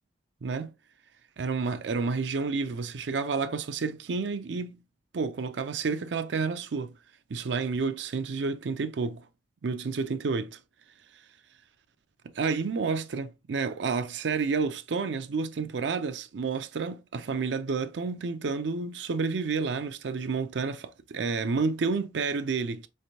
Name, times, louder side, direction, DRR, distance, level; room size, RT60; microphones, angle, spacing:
voice 1, 0.4-0.7 1.4-4.8 5.1-7.0 7.3-9.2 9.6-10.6 12.3-22.9, right 4 dB, 85° right, 0.5 m, -30 dB
4.2 x 3.2 x 2.7 m
head